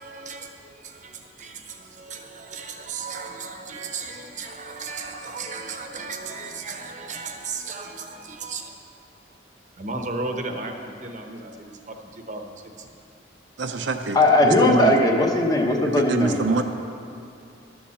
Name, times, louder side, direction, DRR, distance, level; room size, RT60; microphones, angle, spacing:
voice 1, 0.0-8.7 9.8-12.9 16.5-16.6, right 3 dB, 40° right, 5 dB, 0.9 m, -35 dB
voice 2, 13.6-15.0 16.0-16.6, right 3 dB, 65° right, 6 dB, 0.6 m, -25 dB
voice 3, 14.1-16.4, left 1 dB, 20° left, 1 dB, 0.9 m, -18 dB
12.0 x 7.1 x 7.2 m, 2.6 s
head